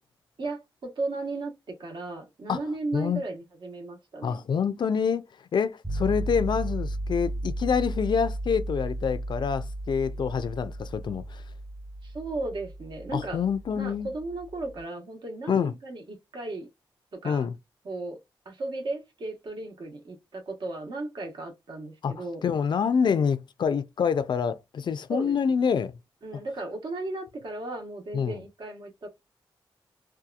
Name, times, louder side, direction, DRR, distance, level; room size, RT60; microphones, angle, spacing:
voice 1, 0.4-4.3 12.0-13.4 13.7-16.7 17.1-17.4 17.8-18.2 18.4-22.4 25.1-25.3 26.2-29.1, right 2 dB, 65° right, 1.0 m, -35 dB
voice 2, 4.2-5.2 5.5-11.4 13.1-14.1 15.5-15.7 17.2-17.5 22.0-26.0 28.1-28.4, left 6 dB, 60° left, 0.3 m, -26 dB
sound 1, 5.8-14.8, right 1 dB, 20° right, 1.2 m, -34 dB
2.7 x 2.3 x 2.3 m
wide cardioid pair, 135°, 9 cm